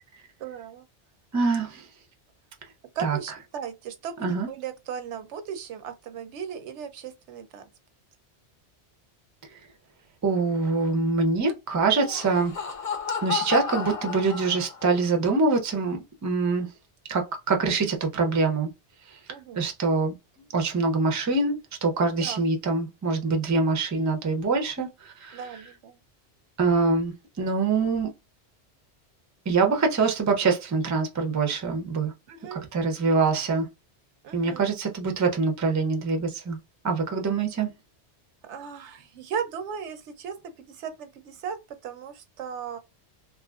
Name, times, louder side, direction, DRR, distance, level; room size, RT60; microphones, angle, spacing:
voice 1, 0.4-0.9 2.9-7.7 19.3-19.7 22.1-22.5 25.3-26.0 32.3-32.7 32.9-33.1 34.2-34.7 38.4-42.8, right 7 dB, 80° right, 0.9 m, -37 dB
voice 2, 1.3-1.9 3.0-3.2 4.2-4.5 10.2-12.5 13.2-16.7 17.1-18.7 19.5-20.1 20.5-21.5 21.8-25.4 26.6-28.1 29.5-32.1 32.5-33.7 34.3-36.6 36.8-37.7, right 4 dB, 25° right, 0.3 m, -24 dB
Laughter, 11.8-15.0, left 6 dB, 45° left, 0.4 m, -32 dB
3.0 x 2.4 x 2.3 m
omnidirectional pair, 1.2 m